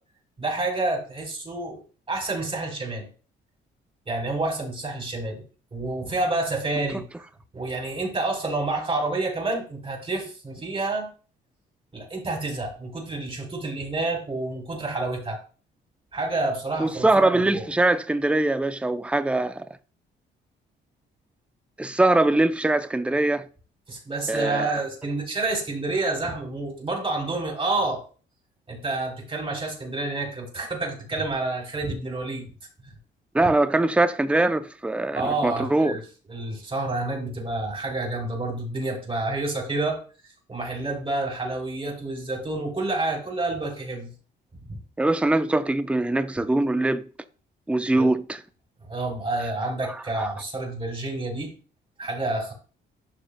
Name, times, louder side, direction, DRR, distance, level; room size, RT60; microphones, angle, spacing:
voice 1, 0.4-1.8 2.1-3.1 4.1-5.4 5.7-7.0 7.5-11.1 11.9-15.4 16.1-17.6 23.9-28.0 28.7-32.5 35.1-36.0 36.3-40.0 40.5-44.1 44.7-44.8 48.0-48.1 48.9-51.5 52.0-52.5, right 2 dB, 25° right, 3.8 m, -29 dB
voice 2, 16.8-19.7 21.8-23.4 24.3-24.8 33.3-36.0 45.0-47.0 47.7-48.4 49.9-50.3, right 2 dB, 5° right, 0.5 m, -22 dB
11.5 x 6.4 x 2.2 m
cardioid pair, 90°, 20 cm